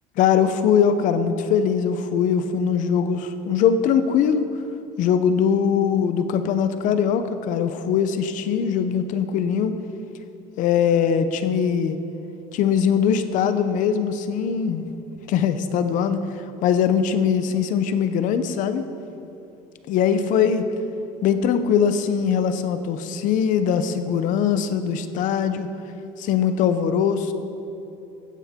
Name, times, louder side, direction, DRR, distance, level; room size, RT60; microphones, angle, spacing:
voice 1, 0.2-4.5 5.0-9.7 10.6-12.0 12.5-14.8 15.3-16.2 16.6-18.8 19.9-20.6 21.2-25.7 26.2-27.3, left 7 dB, 50° left, 10 dB, 0.7 m, -21 dB
16.0 x 9.3 x 3.7 m, 3.0 s
cardioid pair, 140°, 16 cm